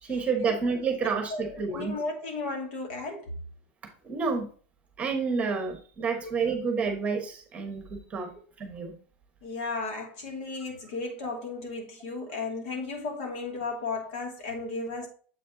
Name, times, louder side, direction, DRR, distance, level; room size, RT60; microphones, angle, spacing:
voice 1, 0.0-2.0 4.0-4.5 5.0-8.3 8.6-8.9, right 5 dB, 20° right, 1.1 m, -29 dB
voice 2, 1.3-3.3 6.0-6.3 9.4-15.1, left 3 dB, 65° left, 2.5 m, -34 dB
7.3 x 4.3 x 3.8 m
supercardioid pair, 160°, 7 cm